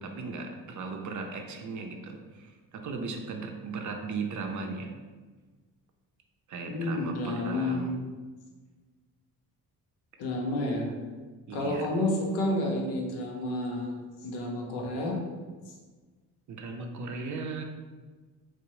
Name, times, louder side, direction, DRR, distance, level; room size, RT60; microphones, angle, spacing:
voice 1, 0.0-4.9 6.5-8.0 11.5-11.9 16.5-17.6, right 4 dB, 45° right, 3 dB, 0.5 m, -37 dB
voice 2, 6.7-8.0 10.2-10.9 11.5-15.2, left 1 dB, 85° left, 0 dB, 0.6 m, -30 dB
2.6 x 2.0 x 3.0 m, 1.4 s
supercardioid pair, 65°, 41 cm